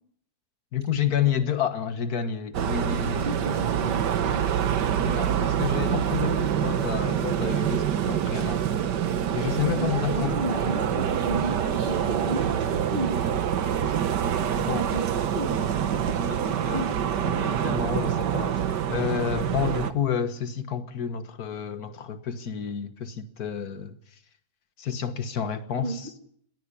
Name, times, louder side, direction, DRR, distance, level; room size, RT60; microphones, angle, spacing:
voice 1, 0.7-3.3 5.0-8.6 9.3-10.7 13.8-14.0 14.6-14.9 15.9-16.4 16.6-16.9 17.2-24.0 24.8-26.1, left 8 dB, 65° left, 1.8 m, -30 dB
sound 1, 2.5-19.9, right 9 dB, 90° right, 1.7 m, -26 dB
voice 2, 3.2-4.7 9.8-13.2 14.6-15.6 16.1-16.9 25.8-26.0, right 2 dB, 30° right, 2.2 m, -34 dB
21.0 x 15.5 x 8.4 m
omnidirectional pair, 1.8 m